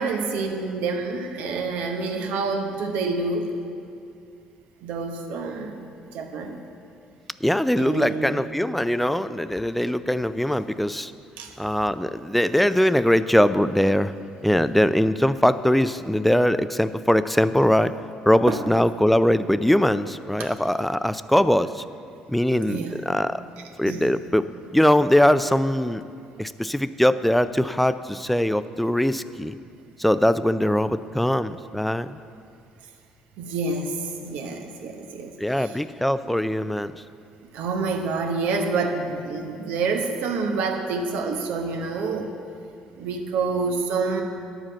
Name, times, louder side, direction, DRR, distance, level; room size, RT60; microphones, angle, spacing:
voice 1, 0.0-3.5 4.8-5.9 6.1-6.6 7.7-8.4 11.4-11.5 18.5-18.6 20.4-20.5 22.7-23.0 23.9-24.1 33.4-34.0 34.2-35.8 36.3-36.4 37.5-42.3 43.0-44.2, right 4 dB, 80° right, 4 dB, 1.0 m, -28 dB
voice 2, 7.4-11.1 11.6-14.1 14.4-17.9 18.3-21.8 22.3-23.4 23.8-24.5 24.7-26.0 26.4-29.6 30.0-32.2 35.4-37.0, left 1 dB, 5° left, 13 dB, 0.3 m, -21 dB
10.0 x 5.0 x 7.5 m, 2.4 s
supercardioid pair, 80°, 3 cm